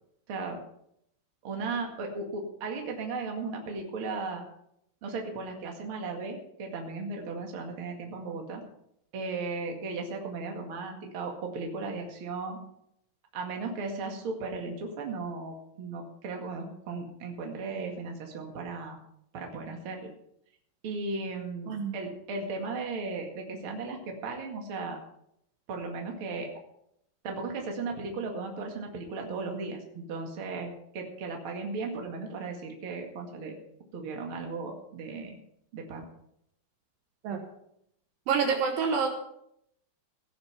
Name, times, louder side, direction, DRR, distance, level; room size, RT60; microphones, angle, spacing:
voice 1, 1.4-4.4 5.0-8.6 9.1-12.6 13.3-19.0 19.3-20.1 20.8-25.0 25.7-26.5 27.2-33.6 33.9-35.3 35.7-36.1, right 3 dB, 40° right, 2 dB, 2.3 m, -36 dB
voice 2, 38.3-39.1, right 6 dB, 70° right, 4 dB, 2.7 m, -27 dB
17.0 x 7.0 x 6.0 m, 0.75 s
omnidirectional pair, 4.5 m